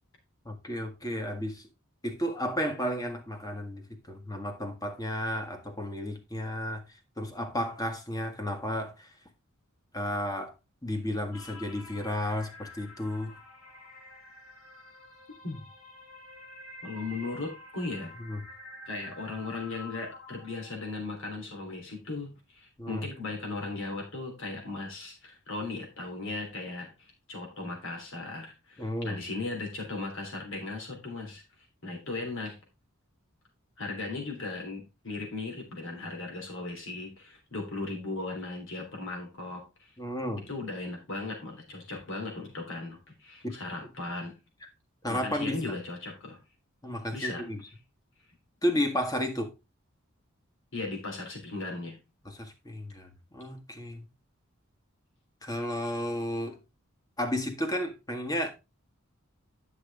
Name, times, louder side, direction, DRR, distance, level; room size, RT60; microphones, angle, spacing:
voice 1, 0.5-1.7 2.0-9.2 9.9-10.5 10.8-13.4 18.2-18.4 22.8-23.1 28.8-29.2 40.0-40.4 43.4-43.6 45.0-45.6 46.8-47.6 48.6-49.5 52.3-54.0 55.4-56.6 57.2-58.5, left 1 dB, 20° left, 1.8 m, -33 dB
sound 1, 11.3-21.4, left 2 dB, 85° left, 2.6 m, -49 dB
voice 2, 16.8-18.1 18.9-31.4 31.8-32.6 33.8-39.9 40.5-44.4 45.0-46.4 47.1-47.5 50.7-52.0, left 3 dB, 65° left, 3.5 m, -37 dB
11.0 x 6.2 x 3.6 m
head